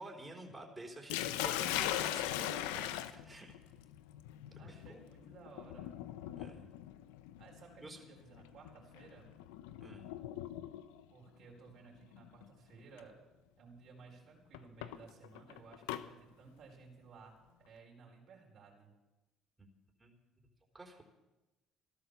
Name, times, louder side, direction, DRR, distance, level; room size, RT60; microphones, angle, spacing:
voice 1, 0.0-3.5 4.5-5.0 6.4-6.7 7.8-8.0 9.8-10.1 19.6-19.7 20.0-20.1 20.7-21.0, right 1 dB, 15° right, 1 dB, 4.1 m, -50 dB
Sink (filling or washing), 1.1-11.0 12.1-12.5 13.0-13.1 14.5-16.0, left 13 dB, 85° left, 0.7 m, -40 dB
voice 2, 4.6-5.9 7.4-9.3 11.1-13.1 13.6-17.4 17.6-18.9, right 4 dB, 60° right, 0 dB, 4.9 m, -57 dB
15.5 x 12.5 x 7.0 m, 1.0 s
supercardioid pair, 70°, 0 cm